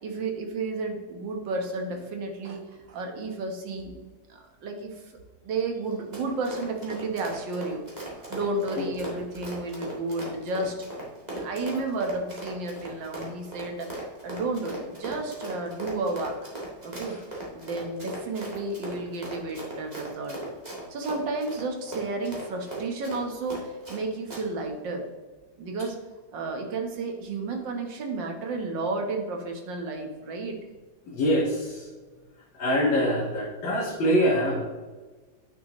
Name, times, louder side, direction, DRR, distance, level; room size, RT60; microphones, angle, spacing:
voice 1, 0.0-3.9 4.3-5.0 5.4-10.8 11.3-13.9 14.2-16.5 16.8-17.2 17.5-20.4 20.9-25.1 25.6-26.0 26.3-30.6, right 3 dB, 70° right, 3 dB, 1.9 m, -32 dB
Run, 5.9-24.0 24.3-24.4, right 2 dB, 20° right, 1.9 m, -38 dB
voice 2, 31.1-31.9 32.6-34.6, equal, 75° left, -4 dB, 2.1 m, -24 dB
9.6 x 6.5 x 3.0 m, 1.3 s
omnidirectional pair, 2.1 m